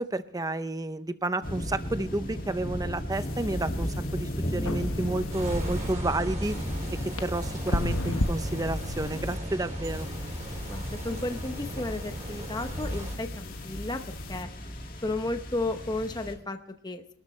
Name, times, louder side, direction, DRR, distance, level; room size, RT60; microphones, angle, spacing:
voice 1, 0.0-6.6 6.9-10.1, right 2 dB, 15° right, 11 dB, 0.6 m, -31 dB
sound 1, 1.4-16.3, equal, 40° left, 2.1 m, -36 dB
sound 2, 3.1-5.9 6.4-9.4 9.8-14.4, left 1 dB, 70° left, 1.3 m, -37 dB
sound 3, 5.3-13.2, equal, 35° right, 4.4 m, -37 dB
voice 2, 10.6-14.5 15.0-17.1, left 2 dB, 20° left, 7 dB, 0.8 m, -33 dB
25.0 x 13.0 x 3.2 m, 0.72 s
head